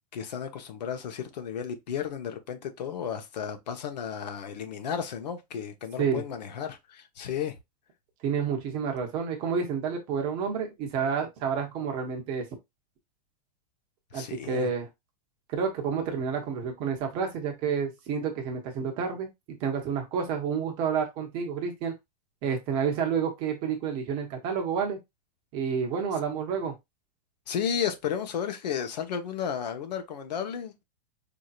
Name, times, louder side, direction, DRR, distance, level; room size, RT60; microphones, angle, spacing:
voice 1, 0.1-7.6 14.1-14.7 27.5-30.8, left 8 dB, 85° left, 1.1 m, -33 dB
voice 2, 8.2-12.4 14.1-14.9 15.5-21.9 22.4-25.0 25.5-26.7, right 6 dB, 25° right, 0.9 m, -29 dB
4.9 x 2.8 x 2.4 m
supercardioid pair, 180°, 21 cm